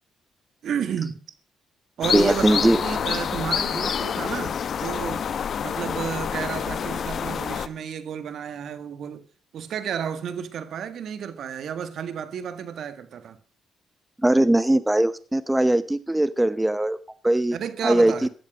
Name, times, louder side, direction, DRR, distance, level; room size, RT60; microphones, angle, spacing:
voice 1, 0.6-1.2 2.0-5.2 5.6-9.2 9.5-13.4 17.5-18.3, right 8 dB, 65° right, 1.7 m, -32 dB
sound 1, 2.0-7.7, left 7 dB, 55° left, 0.9 m, -27 dB
voice 2, 2.1-2.8 14.2-17.0 17.2-17.6 17.8-18.3, right 1 dB, 10° right, 0.7 m, -20 dB
14.0 x 12.0 x 5.0 m
cardioid pair, 90°, 0 cm